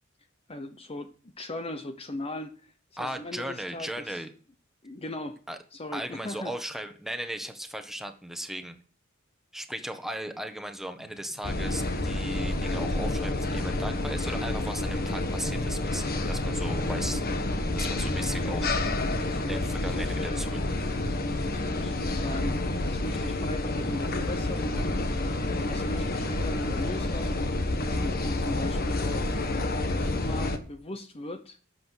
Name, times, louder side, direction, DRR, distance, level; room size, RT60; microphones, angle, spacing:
voice 1, 0.5-2.6 3.0-4.2 4.8-5.4 5.7-6.5 18.1-18.8 19.1-20.5 21.2-27.5 28.0-29.3 29.9-31.6, left 1 dB, 30° left, 8 dB, 0.9 m, -38 dB
voice 2, 3.0-4.3 5.5-5.6 5.9-8.8 9.5-17.2 17.7-18.7 19.4-20.6, right 1 dB, ahead, 7 dB, 1.3 m, -37 dB
sound 1, 10.9-24.6, right 1 dB, 85° left, 3.1 m, -49 dB
sound 2, 11.4-30.6, left 2 dB, 50° left, 1.5 m, -29 dB
12.5 x 7.9 x 6.4 m, 0.41 s
head